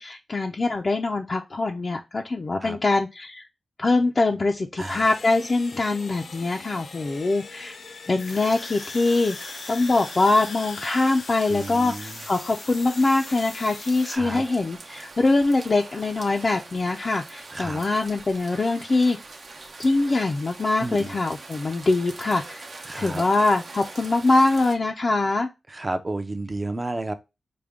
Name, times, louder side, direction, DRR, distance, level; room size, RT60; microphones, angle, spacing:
voice 1, 0.0-3.5 3.8-7.8 8.1-19.2 19.8-22.7 22.9-25.5, left 3 dB, 40° left, 0.4 m, -23 dB
sound 1, 4.8-14.2, left 4 dB, 75° left, 0.7 m, -40 dB
voice 2, 4.8-5.1 11.5-12.2 14.0-14.4 17.5-17.8 20.8-21.2 22.8-23.2 25.7-27.1, right 2 dB, 25° right, 0.6 m, -32 dB
sound 2, 8.3-24.7, right 3 dB, 60° right, 0.8 m, -43 dB
5.0 x 2.2 x 3.5 m
wide cardioid pair, 100°, 0 cm